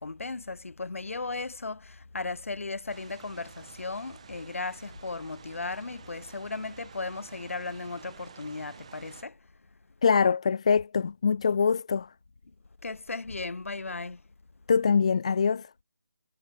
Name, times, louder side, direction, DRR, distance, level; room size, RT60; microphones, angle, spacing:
voice 1, 0.0-9.4 12.8-14.2, left 3 dB, 55° left, 6.4 m, -36 dB
sound 1, 2.9-9.2, right 6 dB, 20° right, 3.0 m, -50 dB
voice 2, 10.0-12.1 14.7-15.7, left 6 dB, 20° left, 1.1 m, -24 dB
figure-of-eight pair, 175°, 9 cm